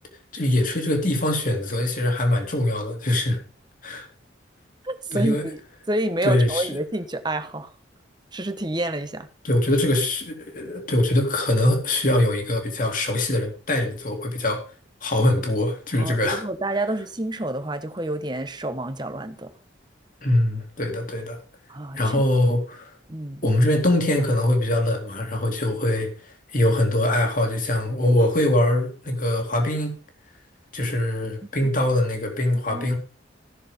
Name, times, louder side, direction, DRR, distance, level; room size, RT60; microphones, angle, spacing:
voice 1, 0.3-3.4 3.8-4.1 5.1-5.5 6.2-6.7 9.4-14.6 15.0-16.4 20.2-21.4 21.9-22.9 23.4-30.0 30.7-33.0, left 1 dB, 45° left, 2.6 m, -23 dB
voice 2, 4.8-5.6 5.9-7.7 8.3-9.3 16.0-19.5 21.7-22.2 23.1-23.4 32.7-32.9, right 1 dB, 20° right, 1.1 m, -28 dB
14.5 x 6.7 x 5.3 m
head